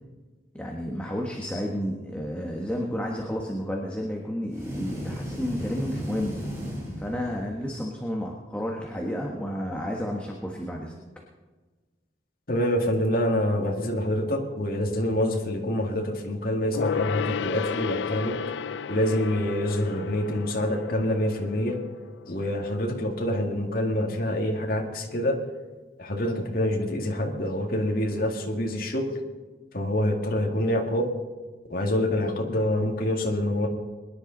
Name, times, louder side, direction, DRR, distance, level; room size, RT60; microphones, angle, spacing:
voice 1, 0.5-6.4 7.0-10.9, equal, 5° left, -1 dB, 1.4 m, -31 dB
sound 1, 4.5-7.7, equal, 15° right, 3.7 m, -35 dB
voice 2, 12.5-18.4 18.9-21.8 22.3-25.4 26.0-29.2 29.7-31.1 31.7-33.7, left 1 dB, 55° left, 1 dB, 2.1 m, -26 dB
Gong, 16.7-22.6 22.9-23.0, left 6 dB, 75° left, 0.4 m, -33 dB
23.0 x 11.0 x 4.0 m, 1.3 s
head